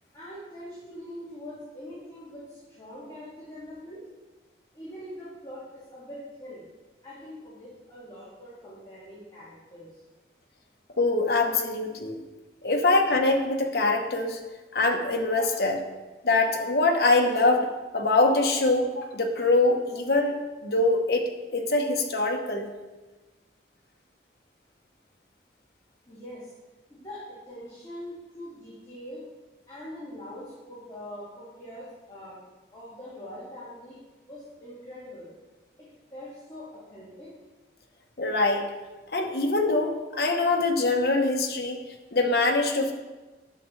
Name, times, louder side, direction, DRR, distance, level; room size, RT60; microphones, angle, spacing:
voice 1, 0.1-4.1 4.7-6.6 7.0-10.0 26.1-26.5 26.9-29.2 29.7-32.4 32.7-34.0 34.3-35.3 36.1-37.3, left 1 dB, 20° left, -11 dB, 2.2 m, -43 dB
voice 2, 11.0-12.2 12.6-14.4 14.7-15.8 16.2-17.7 17.9-20.4 20.6-21.2 21.5-22.7 38.2-38.7 39.1-41.8 42.1-42.9, left 2 dB, 65° left, 2 dB, 1.0 m, -23 dB
10.5 x 6.3 x 3.2 m, 1.2 s
head